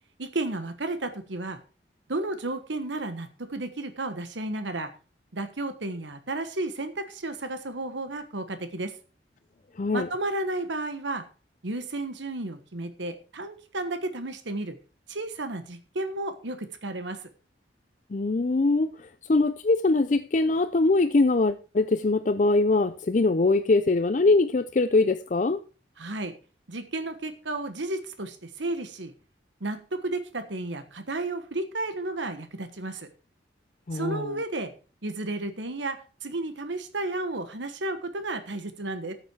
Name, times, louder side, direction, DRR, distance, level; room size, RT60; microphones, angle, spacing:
voice 1, 0.2-1.6 2.1-4.9 5.3-8.9 9.9-11.2 11.6-14.8 15.1-17.2 26.0-26.3 26.7-29.1 29.6-33.1 33.9-34.7 35.0-39.1, right 2 dB, 80° right, 1.3 m, -32 dB
voice 2, 9.8-10.1 18.1-25.6 33.9-34.4, left 3 dB, 40° left, 0.4 m, -23 dB
13.5 x 7.9 x 4.7 m
head